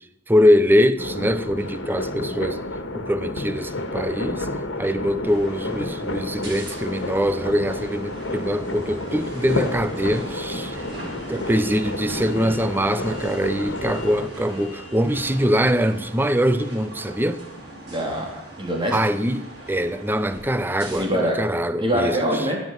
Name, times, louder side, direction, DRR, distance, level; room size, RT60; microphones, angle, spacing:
voice 1, 0.3-2.6 2.9-4.5 4.8-10.8 11.1-17.4 18.9-22.5, equal, 10° right, 0.7 m, -23 dB
sound 1, 1.0-14.3, left 2 dB, 75° left, 1.7 m, -30 dB
sound 2, 5.2-21.0, right 2 dB, 60° right, 7.4 m, -39 dB
voice 2, 17.9-19.0 21.0-21.4 21.8-22.6, equal, 25° right, 3.6 m, -24 dB
15.5 x 9.6 x 7.6 m
head